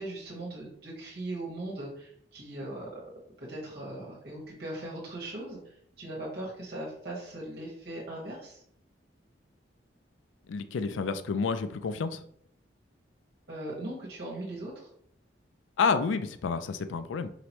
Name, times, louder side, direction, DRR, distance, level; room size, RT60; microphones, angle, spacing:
voice 1, 0.0-3.0 3.4-5.6 6.0-8.6 13.5-14.9, right 1 dB, 55° right, -4 dB, 1.5 m, -39 dB
voice 2, 10.5-12.2 15.8-17.3, left 5 dB, 90° left, 11 dB, 0.4 m, -29 dB
4.9 x 3.0 x 3.0 m, 0.67 s
head